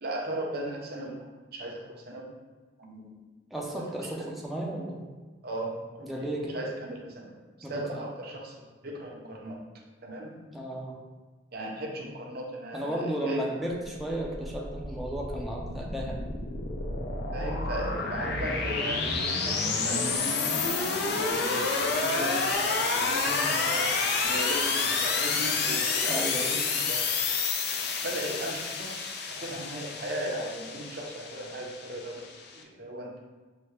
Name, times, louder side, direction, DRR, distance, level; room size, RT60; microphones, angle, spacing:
voice 1, 0.0-1.2 1.5-2.3 2.8-3.2 3.7-3.9 4.1-4.3 5.4-9.6 10.0-10.4 11.5-13.4 17.3-27.0 28.0-32.3 32.5-33.2, right 1 dB, 60° right, -1 dB, 0.8 m, -37 dB
voice 2, 3.5-5.0 6.0-6.6 7.6-8.0 10.5-11.0 12.7-16.2 26.1-26.6 28.4-28.5, right 1 dB, ahead, -3 dB, 0.6 m, -34 dB
sound 1, 14.1-32.6, left 4 dB, 60° left, 0.5 m, -29 dB
5.7 x 2.7 x 3.2 m, 1.3 s
head